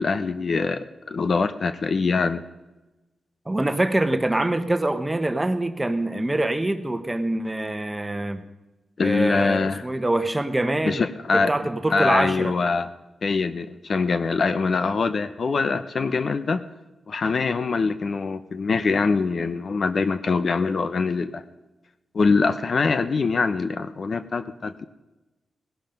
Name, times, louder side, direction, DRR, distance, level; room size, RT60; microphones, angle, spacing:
voice 1, 0.0-2.4 9.0-9.9 10.8-11.5 11.9-12.9 13.2-16.6 17.1-21.4 22.1-24.9, left 4 dB, 55° left, 12 dB, 0.7 m, -23 dB
voice 2, 3.5-8.4 9.0-11.0 11.3-12.5, right 1 dB, 15° right, 9 dB, 1.1 m, -24 dB
17.5 x 11.5 x 5.3 m, 1.1 s
cardioid pair, 85°, 0 cm